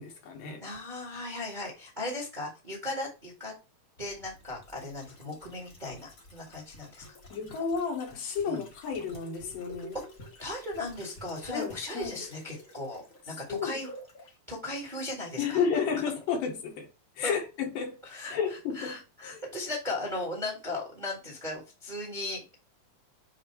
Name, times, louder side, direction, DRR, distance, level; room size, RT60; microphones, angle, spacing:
voice 1, 0.0-0.6 7.3-10.0 11.5-12.2 13.5-13.8 15.4-16.9 17.2-18.0 18.3-19.4, left 6 dB, 80° left, 3.0 m, -32 dB
voice 2, 0.6-3.5 4.0-7.0 8.4-8.6 10.4-13.9 14.2-15.6 17.2-17.4 18.0-18.4 18.7-22.6, left 2 dB, 25° right, 1.1 m, -37 dB
sound 1, 4.0-14.3 14.6-14.7, left 1 dB, 50° left, 0.9 m, -50 dB
7.3 x 2.8 x 4.6 m
omnidirectional pair, 3.9 m